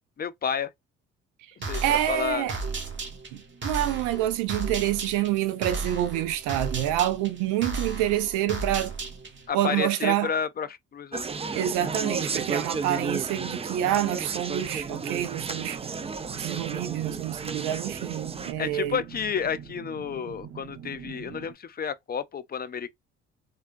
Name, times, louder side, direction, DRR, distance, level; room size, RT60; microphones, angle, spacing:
voice 1, 0.2-0.7 1.7-2.5 9.5-11.3 18.6-22.9, left 7 dB, 30° left, 0.5 m, -31 dB
sound 1, 1.6-9.5, right 4 dB, 40° right, 1.2 m, -34 dB
voice 2, 1.8-2.6 3.3-8.9 9.5-10.3 11.5-15.8 16.4-19.0, right 13 dB, 80° right, 0.5 m, -27 dB
Conversation, 11.1-18.5, right 4 dB, 20° right, 0.4 m, -33 dB
sound 2, 14.6-21.5, right 9 dB, 60° right, 1.5 m, -44 dB
3.5 x 2.3 x 2.5 m
hypercardioid pair, 50°, 31 cm